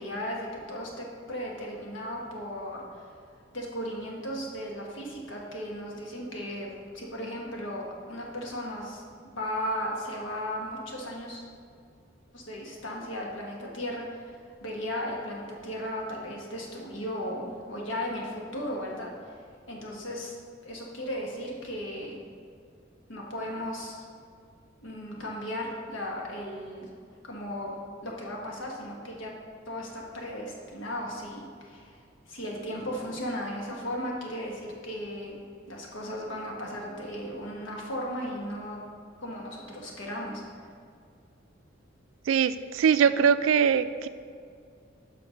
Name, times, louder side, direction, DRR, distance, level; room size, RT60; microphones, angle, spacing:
voice 1, 0.0-3.0 3.5-6.7 6.9-11.4 12.3-19.4 19.7-20.4 20.6-22.2 23.1-24.1 24.8-26.9 27.2-27.7 28.0-29.3 29.7-35.4 35.7-38.8 39.2-40.7, equal, 80° left, -1 dB, 1.3 m, -36 dB
voice 2, 42.3-44.1, right 7 dB, 90° right, 13 dB, 0.3 m, -22 dB
5.9 x 5.9 x 5.1 m, 2.2 s
head